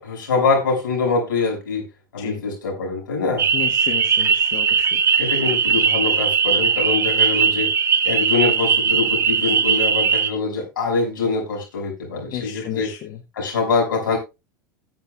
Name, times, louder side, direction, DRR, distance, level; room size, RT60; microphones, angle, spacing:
voice 1, 0.0-1.8 2.1-3.5 5.2-7.7 8.0-12.9 13.4-14.2, left 4 dB, 75° left, -1 dB, 5.9 m, -24 dB
sound 1, 3.4-10.3, right 6 dB, 25° right, 1.2 m, -19 dB
voice 2, 3.5-5.0 12.3-13.0, left 11 dB, 45° left, 5 dB, 1.2 m, -32 dB
19.5 x 7.4 x 2.3 m, 0.26 s
figure-of-eight pair, 85°, 11 cm